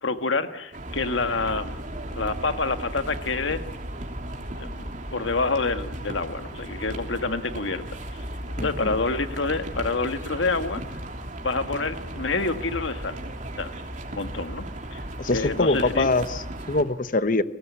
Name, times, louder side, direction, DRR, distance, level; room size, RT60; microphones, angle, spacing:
voice 1, 0.0-1.7 2.1-3.6 4.6-8.2 8.6-10.8 11.4-13.2 13.6-13.7 14.1-16.1, left 3 dB, 80° left, 8 dB, 1.7 m, -28 dB
sound 1, 0.7-16.8, right 1 dB, 40° right, 3.3 m, -35 dB
voice 2, 8.6-9.0 15.2-17.4, left 2 dB, 45° left, 12 dB, 1.0 m, -24 dB
30.0 x 18.5 x 8.4 m, 0.90 s
head